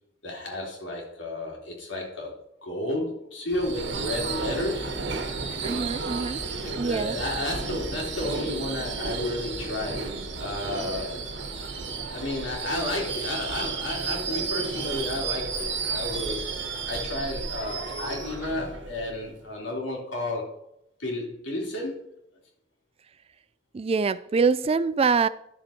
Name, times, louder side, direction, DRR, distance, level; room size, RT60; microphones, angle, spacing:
voice 1, 0.2-5.0 6.5-11.5 12.1-16.6 16.9-20.5 21.0-22.1, left 1 dB, 75° left, 3.1 m, -32 dB
Subway metro underground / Screech, 3.5-19.4, right 4 dB, 70° right, 1.3 m, -32 dB
voice 2, 5.6-6.4 6.7-7.2 23.7-25.3, right 5 dB, 30° right, 0.3 m, -24 dB
11.0 x 6.8 x 4.4 m
head